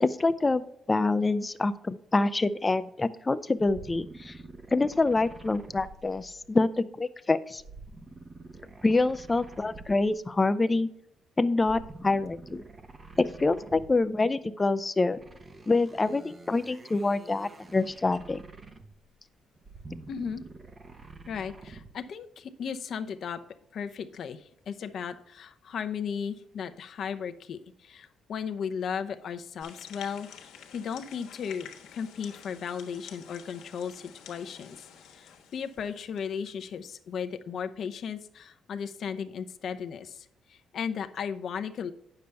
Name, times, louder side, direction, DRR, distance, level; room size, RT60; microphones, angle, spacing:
voice 1, 0.0-4.4 4.7-7.6 8.8-10.9 11.4-12.6 13.2-15.2 15.7-18.4, left 3 dB, 20° left, 14 dB, 0.5 m, -26 dB
sound 1, 3.6-6.7 7.6-10.3 11.6-14.2 15.1-19.1 19.6-22.1, right 3 dB, 30° right, 0.9 m, -48 dB
voice 2, 20.1-20.4 21.3-23.4 23.7-41.9, left 7 dB, 60° left, 8 dB, 0.7 m, -36 dB
sound 2, 29.6-36.4, left 8 dB, 90° left, 1.4 m, -50 dB
9.2 x 6.9 x 3.4 m, 0.74 s
cardioid pair, 100°, 0 cm